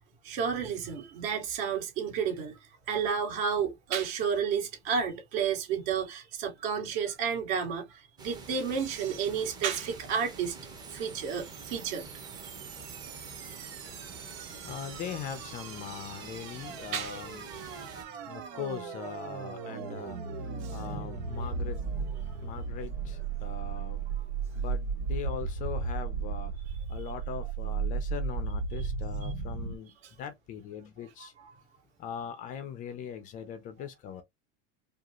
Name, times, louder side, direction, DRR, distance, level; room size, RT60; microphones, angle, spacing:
voice 1, 0.2-2.6 2.9-10.6 10.9-12.1 16.9-17.2 20.6-20.8 22.3-22.4 31.2-31.3, right 7 dB, 55° right, 2.2 m, -31 dB
sound 1, 8.2-18.0, right 3 dB, 15° right, 0.7 m, -47 dB
sound 2, 10.8-29.8, right 5 dB, 85° right, 1.6 m, -36 dB
voice 2, 13.9-29.9 30.2-31.3 32.0-34.2, left 8 dB, 25° left, 0.4 m, -41 dB
4.8 x 2.4 x 2.9 m
cardioid pair, 175°, 29 cm